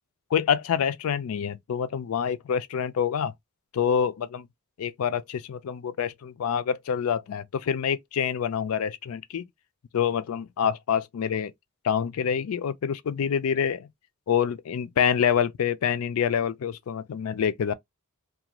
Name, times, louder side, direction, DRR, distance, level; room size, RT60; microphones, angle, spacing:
voice 1, 0.3-3.3 3.7-4.5 4.8-9.5 9.9-11.5 11.8-13.9 14.3-17.7, left 8 dB, 80° left, 0.4 m, -26 dB
2.4 x 2.3 x 2.8 m
head